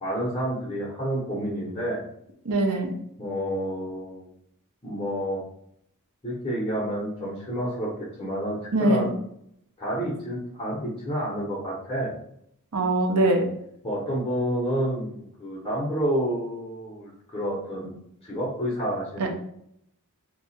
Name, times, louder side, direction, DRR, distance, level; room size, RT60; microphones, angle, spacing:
voice 1, 0.0-2.1 3.2-4.3 4.8-5.4 6.2-7.9 8.2-9.1 9.8-12.2 13.8-17.9 18.2-19.3, equal, 25° left, -5 dB, 0.8 m, -29 dB
voice 2, 2.5-2.9 8.7-9.1 12.7-13.4 19.2-19.3, right 2 dB, 75° right, 3 dB, 0.7 m, -22 dB
2.8 x 2.3 x 4.1 m, 0.73 s
head